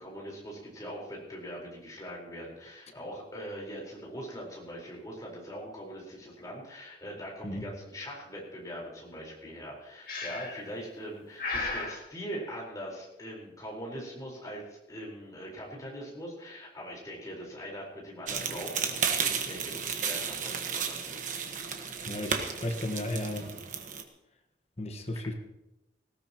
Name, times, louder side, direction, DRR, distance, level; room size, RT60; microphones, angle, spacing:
voice 1, 0.0-21.2, equal, 20° left, -4 dB, 4.4 m, -42 dB
Breathing, 10.1-10.7 11.4-12.0, left 3 dB, 50° left, 2.1 m, -34 dB
sound 1, 18.3-24.0, right 6 dB, 45° right, 1.3 m, -33 dB
voice 2, 22.1-23.6 24.8-25.3, left 1 dB, 35° left, 5 dB, 1.3 m, -34 dB
18.5 x 17.0 x 3.0 m, 0.91 s
head